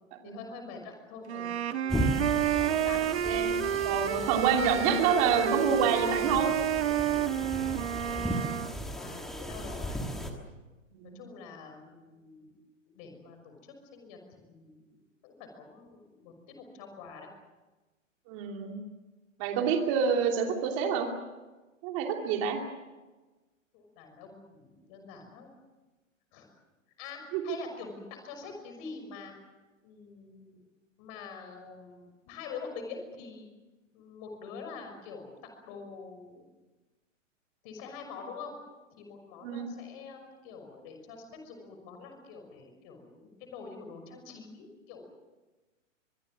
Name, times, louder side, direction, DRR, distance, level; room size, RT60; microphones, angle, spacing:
voice 1, 0.2-1.6 2.3-3.0 8.0-8.5 8.9-10.0 11.1-12.6 12.9-13.6 13.9-14.2 14.5-15.0 15.2-17.3 23.7-25.5 26.3-26.5 27.0-29.3 29.8-30.6 31.0-33.5 33.9-35.3 35.6-36.5 37.6-38.6 38.9-45.2, left 5 dB, 25° left, 5 dB, 6.0 m, -45 dB
sound 1, 1.3-8.7, right 10 dB, 55° right, 1.3 m, -30 dB
sound 2, 1.9-10.3, equal, ahead, 1.4 m, -36 dB
voice 2, 3.2-3.6 3.8-6.5 10.9-11.2 18.3-18.8 19.4-21.1 21.8-22.6 27.3-27.6 39.4-39.7, right 7 dB, 25° right, 2 dB, 2.9 m, -27 dB
24.5 x 22.5 x 7.8 m, 1.2 s
hypercardioid pair, 170°, 39 cm